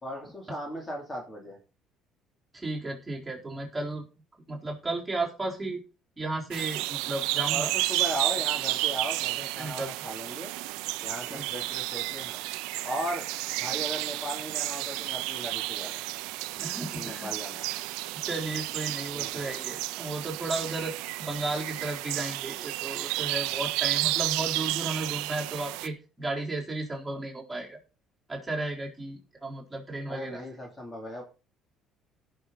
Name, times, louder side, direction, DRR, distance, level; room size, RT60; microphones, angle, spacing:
voice 1, 0.0-1.6 7.5-10.5 11.0-12.4 12.8-13.3 13.6-15.9 16.9-17.7 19.1-19.6 30.1-31.2, equal, 20° left, 1 dB, 3.2 m, -37 dB
voice 2, 2.5-4.0 4.5-5.8 6.2-7.7 9.4-9.9 11.3-11.5 16.6-17.3 18.1-27.8 28.3-30.4, right 2 dB, 10° right, -3 dB, 4.1 m, -34 dB
sound 1, 6.5-25.9, right 19 dB, 90° right, 0.5 m, -32 dB
16.5 x 6.6 x 4.1 m, 0.34 s
cardioid pair, 100°, 0 cm